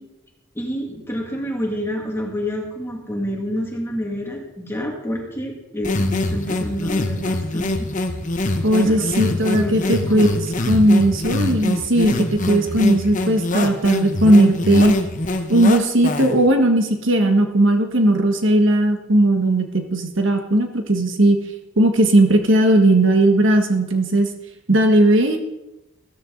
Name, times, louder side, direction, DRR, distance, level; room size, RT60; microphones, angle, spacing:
voice 1, 0.5-7.9 8.8-10.4, equal, 10° left, 0 dB, 2.4 m, -28 dB
sound 1, 5.8-16.5, left 2 dB, 35° left, 1.0 m, -24 dB
voice 2, 8.6-10.4 10.7-14.9 15.5-21.4 21.8-24.3 24.7-25.4, right 1 dB, 60° right, 5 dB, 1.5 m, -17 dB
15.0 x 13.5 x 4.0 m, 0.94 s
head